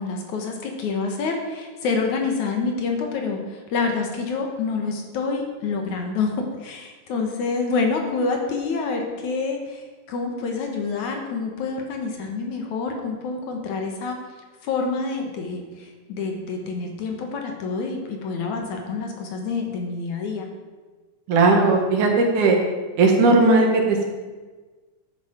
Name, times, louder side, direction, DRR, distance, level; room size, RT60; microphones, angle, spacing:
voice 1, 0.0-14.2 14.6-20.5, left 4 dB, 65° left, 3 dB, 2.6 m, -27 dB
voice 2, 21.3-22.6 23.0-24.0, right 3 dB, 65° right, 2 dB, 2.9 m, -17 dB
12.5 x 9.2 x 5.1 m, 1.3 s
omnidirectional pair, 3.9 m